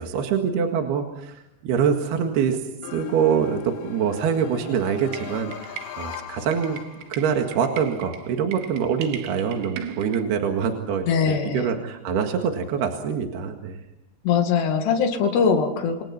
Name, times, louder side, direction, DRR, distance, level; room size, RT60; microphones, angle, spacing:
voice 1, 0.0-2.6 2.9-13.8, right 7 dB, 60° right, 4 dB, 3.4 m, -25 dB
sound 1, 2.8-7.5, left 11 dB, 90° left, 4.0 m, -38 dB
sound 2, 5.0-10.2, right 9 dB, 75° right, 4.0 m, -40 dB
voice 2, 11.1-11.7 14.2-16.0, left 6 dB, 60° left, 5 dB, 4.0 m, -21 dB
28.5 x 26.5 x 5.8 m, 0.86 s
omnidirectional pair, 5.7 m